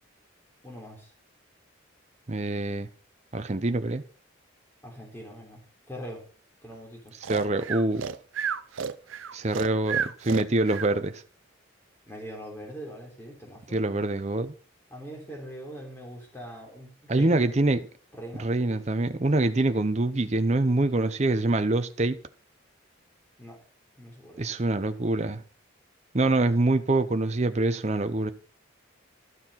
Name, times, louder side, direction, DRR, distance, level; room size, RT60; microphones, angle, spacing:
voice 1, 0.6-1.1 4.8-5.6 5.9-6.2 6.6-7.1 12.1-13.8 14.9-17.4 18.2-18.5 23.4-23.6 24.0-24.5, equal, 10° left, 3.4 m, -42 dB
voice 2, 2.3-2.9 3.3-4.0 7.3-8.0 9.3-11.2 13.7-14.5 17.1-17.8 18.4-22.2 24.4-25.4 26.1-28.3, right 2 dB, 35° right, 0.7 m, -25 dB
Breathing, 7.2-10.9, right 7 dB, 75° right, 0.6 m, -31 dB
12.5 x 7.0 x 5.6 m
head